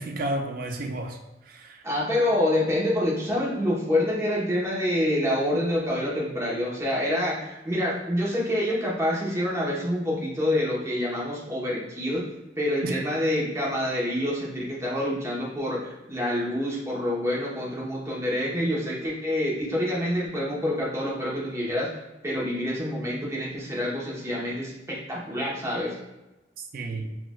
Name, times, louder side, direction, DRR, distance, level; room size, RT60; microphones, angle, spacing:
voice 1, 0.0-1.9 2.7-2.9 12.8-13.0 26.7-27.1, right 1 dB, 55° right, 4 dB, 0.5 m, -32 dB
voice 2, 1.8-12.3 12.6-21.9 22.2-26.0, left 1 dB, 15° right, -5 dB, 0.9 m, -27 dB
6.1 x 2.4 x 2.3 m, 0.99 s
head